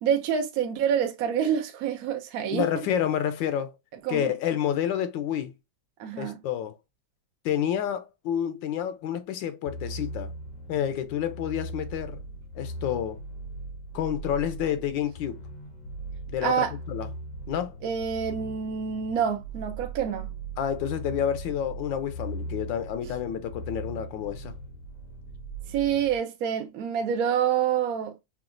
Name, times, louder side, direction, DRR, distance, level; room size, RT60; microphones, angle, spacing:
voice 1, 0.0-2.7 4.0-4.3 6.0-6.4 16.4-16.7 17.8-20.3 25.7-28.1, right 8 dB, 70° right, 0.8 m, -27 dB
voice 2, 2.5-3.7 4.1-5.5 6.2-6.8 7.4-10.3 10.7-12.2 12.5-13.2 13.9-15.4 16.3-17.1 17.5-17.7 20.6-24.5, left 9 dB, 75° left, 1.2 m, -29 dB
sound 1, 9.7-26.2, right 2 dB, 60° left, 0.8 m, -39 dB
5.8 x 2.4 x 2.4 m
omnidirectional pair, 2.1 m